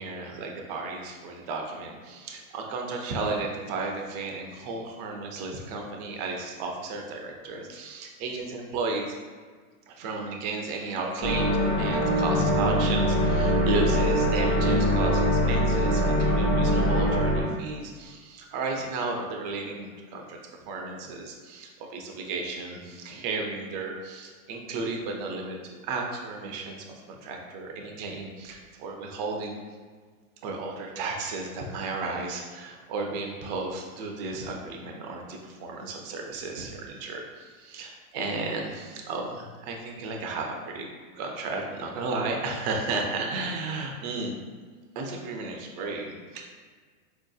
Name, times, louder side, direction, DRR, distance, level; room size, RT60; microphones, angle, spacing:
voice 1, 0.0-9.1 9.9-20.4 20.7-29.6 30.4-40.9 41.2-44.3 45.0-46.4, right 3 dB, 35° right, 1 dB, 0.4 m, -34 dB
sound 1, 11.2-17.4, equal, 20° left, 1.0 m, -23 dB
4.2 x 2.7 x 2.3 m, 1.5 s
supercardioid pair, 135°, 41 cm